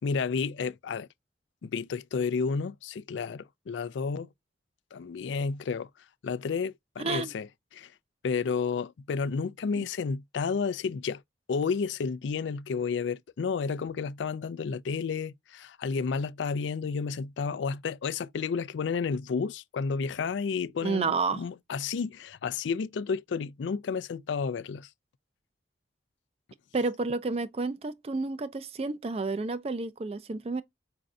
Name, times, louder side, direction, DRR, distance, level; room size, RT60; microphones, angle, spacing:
voice 1, 0.0-1.1 1.6-4.3 4.9-5.9 6.2-7.5 7.7-7.9 8.2-11.2 11.5-24.9, left 5 dB, 85° left, 0.4 m, -31 dB
voice 2, 7.0-7.3 9.8-9.9 20.8-21.4 26.7-30.6, right 3 dB, 35° right, 0.4 m, -30 dB
5.0 x 2.6 x 2.3 m
head